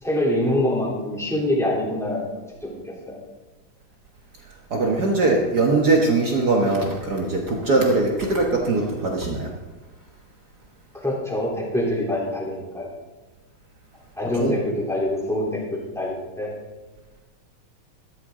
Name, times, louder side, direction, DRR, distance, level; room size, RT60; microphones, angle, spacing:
voice 1, 0.0-2.3 2.6-3.2 10.9-12.9 14.2-16.5, left 1 dB, ahead, -5 dB, 2.7 m, -25 dB
voice 2, 4.7-9.5 14.4-14.5, right 3 dB, 85° right, 0 dB, 0.8 m, -21 dB
13.5 x 13.0 x 3.7 m, 1.2 s
omnidirectional pair, 3.8 m